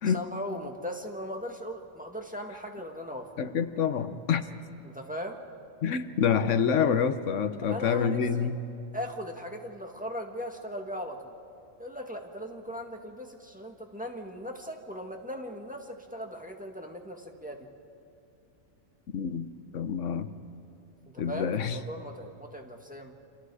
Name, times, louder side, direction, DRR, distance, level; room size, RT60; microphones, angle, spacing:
voice 1, 0.1-3.3 4.8-5.4 7.6-8.5 8.9-11.4 11.8-17.7 21.1-23.1, equal, 5° right, 1 dB, 1.8 m, -38 dB
voice 2, 3.4-4.4 5.8-8.6 19.1-20.3 21.2-21.8, left 7 dB, 90° left, 11 dB, 1.3 m, -27 dB
29.5 x 26.5 x 4.9 m, 2.6 s
omnidirectional pair, 1.2 m